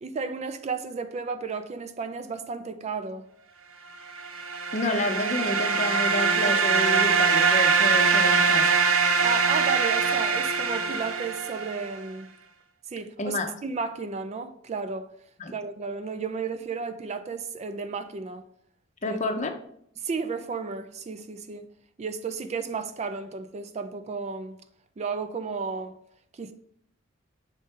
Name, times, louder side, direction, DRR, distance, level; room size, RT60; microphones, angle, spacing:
voice 1, 0.0-3.3 9.2-12.3 12.9-15.1 15.5-18.4 19.1-19.2 20.0-21.7 22.0-24.6 25.0-25.9 26.3-26.5, right 5 dB, 35° right, 0.4 m, -33 dB
sound 1, 4.2-11.9, right 5 dB, 85° right, 0.7 m, -23 dB
voice 2, 4.7-8.7 13.2-13.5 15.4-15.5 19.0-19.5, left 2 dB, 35° left, 0.6 m, -29 dB
6.5 x 4.2 x 3.6 m
head